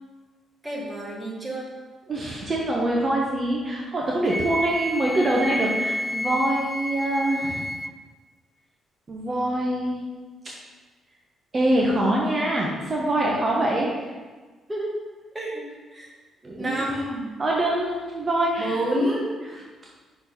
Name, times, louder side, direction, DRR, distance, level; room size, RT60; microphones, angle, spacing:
voice 1, 0.6-1.6 14.7-15.0 15.3-15.6 15.9-16.1 16.6-17.3 18.6-19.5, right 1 dB, 15° right, -4 dB, 1.7 m, -28 dB
voice 2, 2.1-7.6 9.1-10.0 11.5-13.9 16.4-16.9 17.4-18.8 19.5-19.6, right 1 dB, 35° right, -3 dB, 1.1 m, -24 dB
Wind instrument woodwind instrument, 4.3-7.9, equal, ahead, 0.4 m, -30 dB
6.0 x 4.3 x 5.2 m, 1.3 s
cardioid pair, 90°, 0 cm